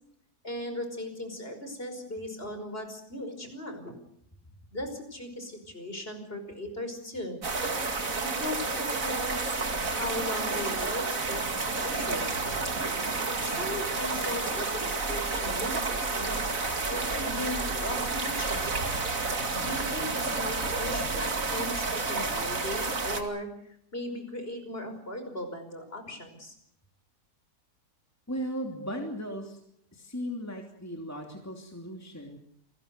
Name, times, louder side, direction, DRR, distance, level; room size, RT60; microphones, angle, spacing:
voice 1, 0.4-3.9 4.7-7.4 8.2-12.3 13.3-16.4 16.9-18.7 19.5-23.5 23.9-26.5 28.6-28.9, left 1 dB, 35° left, 6 dB, 5.7 m, -38 dB
sound 1, 7.4-23.2, right 3 dB, 55° right, 2.7 m, -30 dB
voice 2, 28.3-29.6 29.9-32.4, equal, 10° left, 2 dB, 2.9 m, -37 dB
29.0 x 21.0 x 6.8 m, 0.72 s
omnidirectional pair, 1.7 m